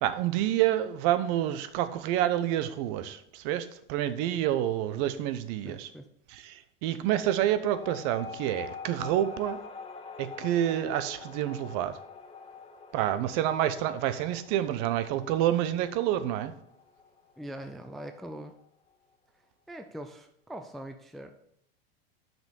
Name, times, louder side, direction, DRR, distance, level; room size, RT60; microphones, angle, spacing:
voice 1, 0.0-5.9 6.3-9.6 10.2-12.0 12.9-16.5, right 12 dB, 50° right, 12 dB, 0.8 m, -28 dB
voice 2, 5.6-6.1 17.4-18.5 19.7-21.3, right 1 dB, ahead, 7 dB, 0.4 m, -42 dB
sound 1, 7.7-18.6, left 5 dB, 20° left, 0.8 m, -46 dB
6.0 x 5.3 x 6.8 m, 0.71 s
supercardioid pair, 120°, 30 cm